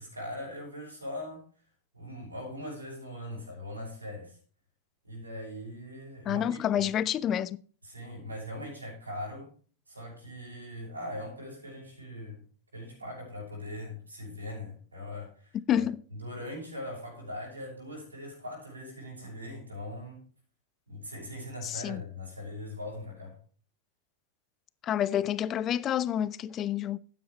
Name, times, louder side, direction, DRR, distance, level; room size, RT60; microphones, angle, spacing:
voice 1, 0.0-1.5 1.9-4.4 5.0-6.8 7.8-9.5 9.9-12.4 12.7-20.3 20.9-23.4, left 1 dB, 80° right, 6.1 m, -41 dB
voice 2, 6.3-7.6 15.7-16.0 21.6-22.0 24.8-27.0, left 10 dB, 30° left, 0.6 m, -28 dB
12.5 x 9.4 x 3.2 m
figure-of-eight pair, 90°, 0 cm